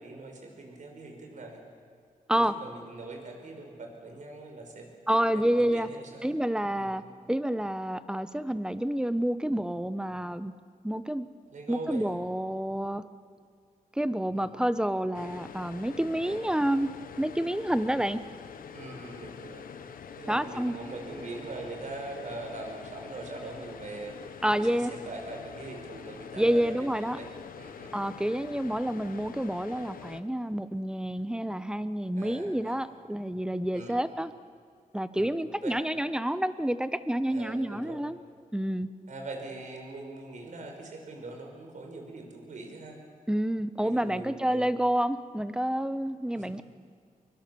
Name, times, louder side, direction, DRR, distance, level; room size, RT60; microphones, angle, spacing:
voice 1, 0.0-1.6 2.3-4.9 5.3-6.3 6.7-7.0 11.5-12.2 14.3-14.5 16.2-16.4 18.7-19.7 20.2-24.1 24.5-27.3 27.6-28.0 32.1-32.9 33.7-34.0 35.1-35.3 35.6-35.8 37.3-38.1 39.1-43.0 43.8-44.7 46.3-46.5, right 2 dB, 60° right, 2 dB, 5.3 m, -42 dB
voice 2, 5.1-5.9 6.2-10.5 10.8-11.3 11.7-13.0 13.9-18.2 20.3-20.8 24.4-24.9 26.3-27.2 27.9-34.3 34.9-38.2 38.5-38.9 43.3-46.6, right 1 dB, 5° right, 13 dB, 1.0 m, -29 dB
sound 1, 15.1-30.2, left 7 dB, 85° left, 1.2 m, -45 dB
24.0 x 23.5 x 7.1 m, 2.2 s
wide cardioid pair, 100°, 14 cm